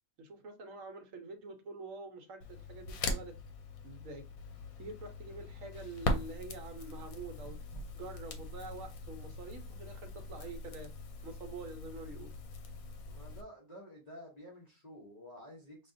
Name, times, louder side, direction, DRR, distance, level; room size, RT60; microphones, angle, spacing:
voice 1, 0.2-3.4 3.8-4.2 4.8-7.6 7.9-10.9 11.2-12.3, right 3 dB, 70° right, 7 dB, 1.1 m, -46 dB
Crackle, 2.4-13.4, left 2 dB, 80° left, 1.2 m, -41 dB
voice 2, 13.0-15.9, equal, 35° left, -4 dB, 0.9 m, -51 dB
5.3 x 2.4 x 2.6 m, 0.30 s
omnidirectional pair, 1.5 m